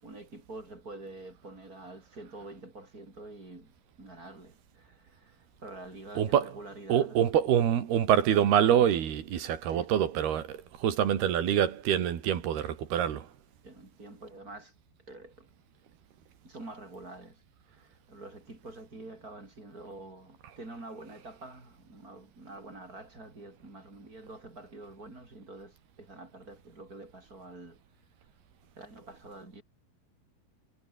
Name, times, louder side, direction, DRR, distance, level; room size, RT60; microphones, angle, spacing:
voice 1, 0.0-7.2 9.7-10.0 13.6-14.7 15.1-15.5 16.4-17.4 17.7-27.8 28.8-29.6, right 2 dB, 20° right, 6.5 m, -47 dB
voice 2, 6.2-6.5 6.9-13.3, right 10 dB, 80° right, 4.4 m, -26 dB
omnidirectional pair, 4.4 m